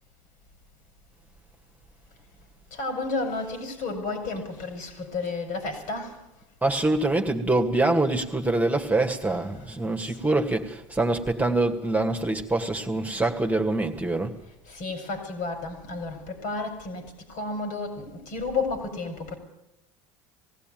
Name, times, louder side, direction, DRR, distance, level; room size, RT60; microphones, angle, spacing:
voice 1, 2.7-6.1 10.1-10.2 14.7-19.4, left 3 dB, 65° left, 5.3 m, -32 dB
voice 2, 6.6-14.4, right 2 dB, 10° right, 2.1 m, -25 dB
19.5 x 16.0 x 9.2 m
hypercardioid pair, 70°, 15 cm